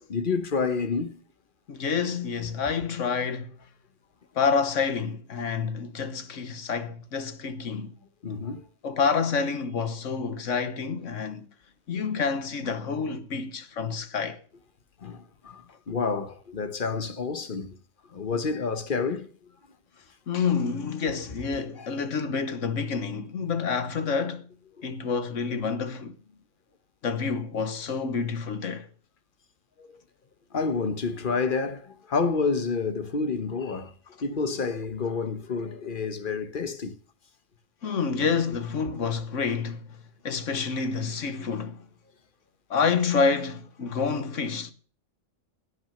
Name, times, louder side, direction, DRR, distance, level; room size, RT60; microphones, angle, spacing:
voice 1, 0.1-1.2 8.2-8.6 15.0-17.8 18.1-19.3 21.8-22.0 29.8-29.9 30.5-33.9 34.2-37.0, left 4 dB, 45° left, 1.1 m, -29 dB
voice 2, 1.7-3.5 4.3-8.0 8.8-11.5 11.9-14.4 18.3-18.4 20.3-24.5 24.8-26.1 27.0-28.9 37.8-39.9 40.2-41.8 42.7-44.7, left 5 dB, 85° left, 1.5 m, -28 dB
16.0 x 6.1 x 6.6 m
omnidirectional pair, 1.3 m